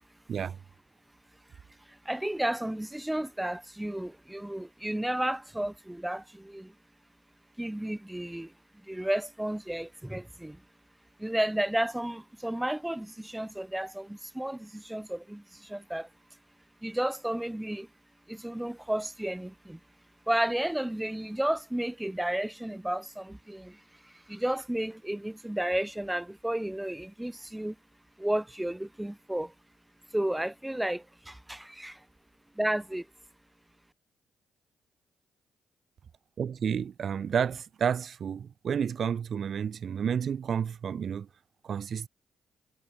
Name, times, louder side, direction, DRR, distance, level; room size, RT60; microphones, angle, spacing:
voice 1, 2.1-6.7 7.6-8.5 8.9-10.6 11.2-16.1 16.8-17.9 18.3-19.8 20.3-23.8 24.3-27.7 28.2-29.5 30.1-32.0 32.6-33.0, right 1 dB, 10° right, 0.4 m, -32 dB
voice 2, 36.4-41.3 41.6-42.1, right 7 dB, 60° right, 0.6 m, -30 dB
hypercardioid pair, 45°, 0 cm